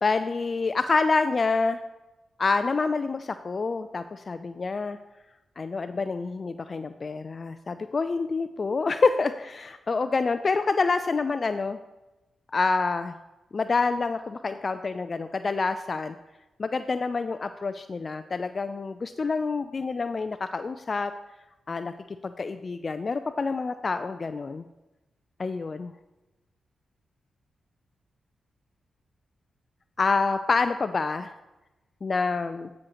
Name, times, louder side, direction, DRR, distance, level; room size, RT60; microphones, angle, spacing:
voice 1, 0.0-1.8 2.4-5.0 5.6-11.8 12.5-13.2 13.5-16.2 16.6-21.1 21.7-21.9 22.2-24.6 25.4-25.9 30.0-31.4 32.0-32.7, left 4 dB, 50° left, 10 dB, 0.3 m, -27 dB
13.5 x 6.3 x 3.0 m, 1.0 s
supercardioid pair, 45°, 0 cm